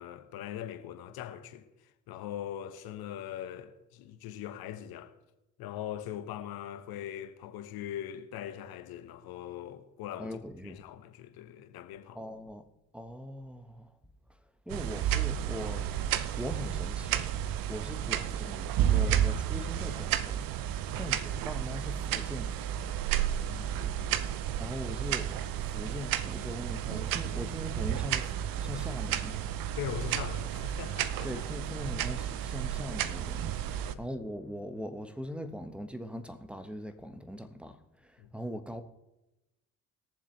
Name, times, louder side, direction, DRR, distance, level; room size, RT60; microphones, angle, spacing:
voice 1, 0.0-1.7 2.1-5.1 5.6-10.4 10.6-12.2 20.9-21.2 23.3-24.3 29.8-31.3 33.7-34.0 38.2-38.3, left 10 dB, 65° left, 1.3 m, -41 dB
voice 2, 10.2-10.8 12.1-12.7 12.9-13.9 14.7-17.3 17.7-22.6 24.6-29.5 31.2-38.8, equal, 5° right, 1.2 m, -41 dB
sound 1, 14.7-33.9, right 10 dB, 60° right, 0.8 m, -32 dB
21.0 x 7.3 x 3.3 m
hypercardioid pair, 65°, 39 cm